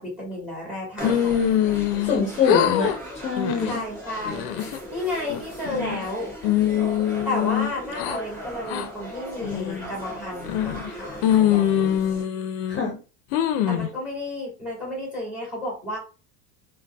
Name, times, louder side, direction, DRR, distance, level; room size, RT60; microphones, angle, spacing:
voice 1, 0.0-1.4 1.9-2.2 3.6-6.3 7.2-11.9 13.7-16.0, left 1 dB, 5° right, -3 dB, 1.3 m, -32 dB
sound 1, 1.0-2.2 2.4-3.0 3.4-3.7 4.2-4.8 5.3-6.0 6.4-8.2 8.7-8.9 9.4-9.9 10.4-10.9 11.2-12.8 13.3-13.9, left 10 dB, 65° left, 0.5 m, -23 dB
sound 2, 1.0-12.2, equal, 25° right, 1.3 m, -38 dB
voice 2, 2.0-3.8 12.7-13.0, left 5 dB, 30° left, -2 dB, 0.7 m, -24 dB
3.8 x 2.2 x 2.2 m, 0.34 s
cardioid pair, 170°, 37 cm